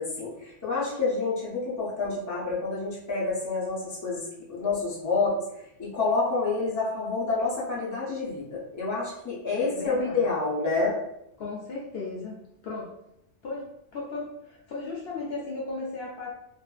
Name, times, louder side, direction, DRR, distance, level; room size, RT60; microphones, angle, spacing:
voice 1, 0.0-5.4 5.8-11.0, left 3 dB, 20° left, -6 dB, 0.6 m, -28 dB
voice 2, 9.6-10.3 11.4-12.4 12.6-12.9 13.4-16.3, left 3 dB, 65° left, -3 dB, 0.8 m, -36 dB
2.6 x 2.5 x 2.3 m, 0.81 s
omnidirectional pair, 1.2 m